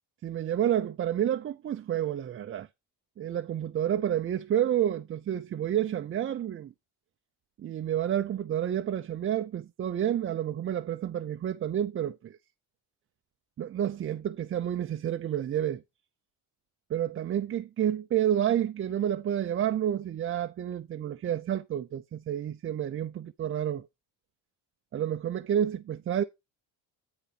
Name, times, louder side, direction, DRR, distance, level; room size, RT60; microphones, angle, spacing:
voice 1, 0.2-2.7 3.2-6.7 7.6-12.4 13.6-15.8 16.9-23.9 24.9-26.2, right 10 dB, 30° right, 0.4 m, -29 dB
10.0 x 3.9 x 5.7 m
cardioid pair, 130°, 44 cm